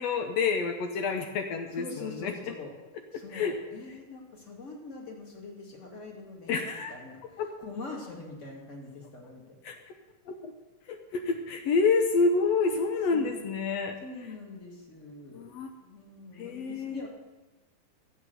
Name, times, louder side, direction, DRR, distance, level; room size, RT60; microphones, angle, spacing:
voice 1, 0.0-2.3 3.3-3.5 6.5-6.9 7.4-7.5 9.6-9.8 10.3-10.5 10.9-14.0 15.3-15.7 16.4-17.0, left 4 dB, 90° left, 6 dB, 1.4 m, -28 dB
voice 2, 1.7-2.7 3.1-9.6 13.1-13.6 14.0-15.5 15.8-17.1, left 3 dB, 25° left, 0 dB, 2.1 m, -44 dB
14.5 x 7.9 x 7.9 m, 1.2 s
omnidirectional pair, 4.2 m